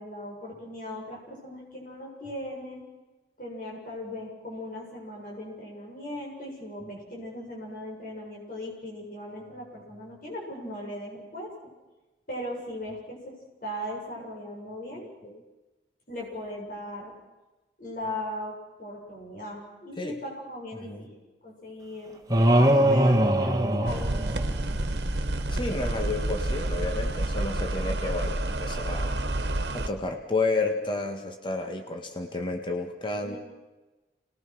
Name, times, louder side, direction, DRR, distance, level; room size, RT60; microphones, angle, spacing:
voice 1, 0.0-2.8 3.4-11.5 12.3-15.1 16.1-17.1 17.8-21.1 21.4-22.2 22.4-24.8 33.2-33.4, left 1 dB, 50° left, -2 dB, 7.1 m, -38 dB
voice 2, 14.9-15.4 20.0-20.2 20.7-21.0 25.5-29.2 29.7-33.4, left 3 dB, 30° left, 4 dB, 1.7 m, -31 dB
sound 1, 22.3-24.8, right 1 dB, 20° right, 1.5 m, -21 dB
sound 2, 23.9-29.9, right 1 dB, 80° right, 1.5 m, -29 dB
28.0 x 20.5 x 6.2 m, 1.1 s
head